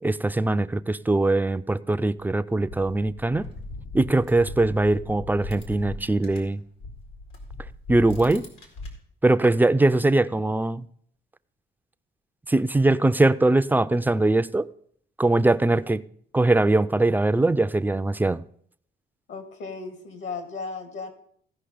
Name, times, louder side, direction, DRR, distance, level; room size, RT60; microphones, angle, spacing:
voice 1, 0.0-3.5 3.9-6.6 7.9-8.5 9.2-10.9 12.5-14.7 15.2-16.0 16.3-18.4, right 2 dB, 10° right, 0.3 m, -21 dB
sound 1, 2.2-6.5 6.8-8.9, left 2 dB, 90° left, 2.3 m, -39 dB
voice 2, 19.3-21.1, left 4 dB, 75° left, 1.9 m, -35 dB
15.5 x 5.4 x 5.1 m
cardioid pair, 90°, 20 cm